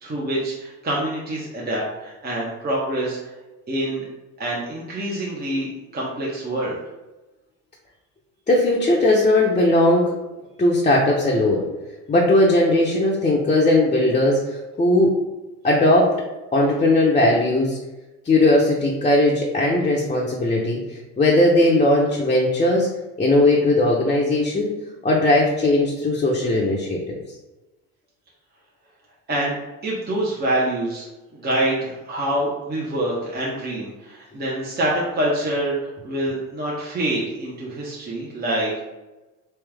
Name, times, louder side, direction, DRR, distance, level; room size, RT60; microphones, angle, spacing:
voice 1, 0.0-3.2 3.7-4.0 4.4-6.7 29.3-31.1 31.3-38.9, right 1 dB, 25° right, -5 dB, 1.0 m, -26 dB
voice 2, 8.5-10.1 10.6-11.6 12.1-15.1 15.6-16.2 16.5-17.8 18.2-22.9 23.2-24.7 25.0-27.1, left 1 dB, 20° left, -4 dB, 0.8 m, -18 dB
3.4 x 3.0 x 3.4 m, 1.1 s
supercardioid pair, 80°, 37 cm